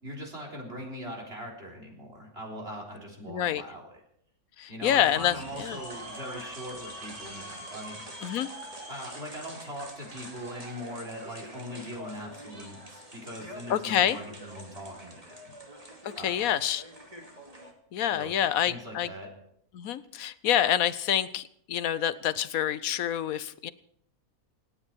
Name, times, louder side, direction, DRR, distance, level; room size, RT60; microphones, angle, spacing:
voice 1, 0.0-3.9 4.7-8.1 8.9-15.5 16.2-16.5 18.1-19.3, equal, 40° right, -2 dB, 4.0 m, -41 dB
voice 2, 3.3-3.6 4.6-5.8 8.2-8.5 13.7-14.2 16.0-16.8 17.9-19.1 19.7-23.7, left 10 dB, 75° left, 15 dB, 1.2 m, -27 dB
sound 1, 5.1-17.7, equal, 25° right, 2.6 m, -44 dB
27.5 x 9.7 x 4.5 m, 0.68 s
omnidirectional pair, 1.5 m